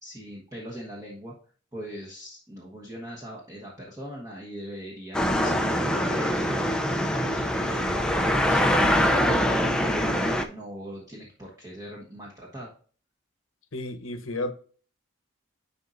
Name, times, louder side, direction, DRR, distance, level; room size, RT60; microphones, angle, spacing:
voice 1, 0.0-1.3 1.7-12.7, equal, 15° right, 1.3 m, -40 dB
sound 1, 5.1-10.5, equal, 5° left, 0.5 m, -24 dB
voice 2, 13.7-14.5, left 2 dB, 85° left, 1.0 m, -32 dB
10.5 x 4.3 x 2.6 m
head